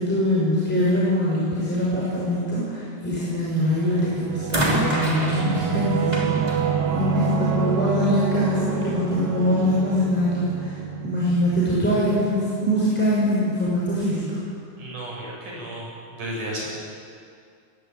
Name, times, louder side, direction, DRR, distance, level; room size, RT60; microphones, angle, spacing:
voice 1, 0.0-14.4, left 1 dB, 5° left, -7 dB, 5.7 m, -23 dB
sound 1, 3.6-3.9 4.5-7.8 8.8-8.9, right 1 dB, 10° right, 3.2 m, -28 dB
Singing / Musical instrument, 3.6-12.8, right 7 dB, 45° right, 1.5 m, -28 dB
voice 2, 14.8-16.6, right 1 dB, 70° right, -4 dB, 9.0 m, -33 dB
22.0 x 18.0 x 9.1 m, 2.3 s
omnidirectional pair, 3.8 m